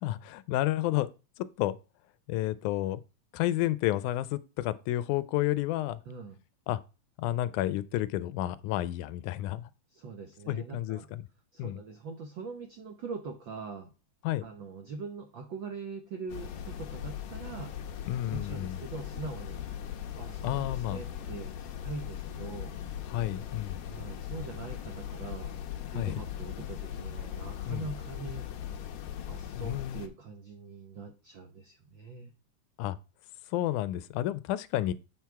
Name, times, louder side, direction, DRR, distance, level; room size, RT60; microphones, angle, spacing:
voice 1, 0.0-1.1 1.6-1.8 2.3-3.0 3.3-6.0 6.7-6.8 7.2-9.7 10.5-11.3 11.6-11.8 14.2-14.4 18.1-18.8 20.4-21.0 23.1-23.8 26.0-26.2 27.7-27.9 29.6-30.0 32.8-33.0 33.5-34.9, left 14 dB, 90° left, 2.1 m, -31 dB
voice 2, 6.0-6.4 9.9-11.1 11.5-13.9 14.4-17.7 18.3-19.7 20.2-22.7 23.8-25.6 25.9-28.5 29.2-32.3, right 4 dB, 75° right, 1.1 m, -42 dB
sound 1, 16.3-30.1, left 10 dB, 70° left, 2.1 m, -39 dB
7.5 x 5.9 x 4.6 m
omnidirectional pair, 3.5 m